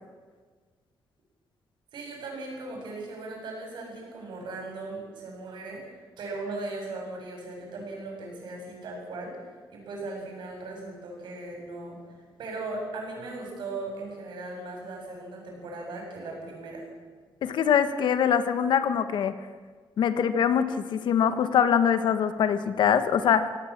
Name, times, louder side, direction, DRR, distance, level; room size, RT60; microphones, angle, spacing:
voice 1, 1.9-5.9 6.2-9.4 9.7-16.8, right 2 dB, 70° right, 1 dB, 7.6 m, -38 dB
voice 2, 17.4-19.3 20.0-23.5, left 8 dB, 70° left, 10 dB, 1.4 m, -23 dB
25.0 x 17.5 x 7.4 m, 1.5 s
wide cardioid pair, 175°, 8 cm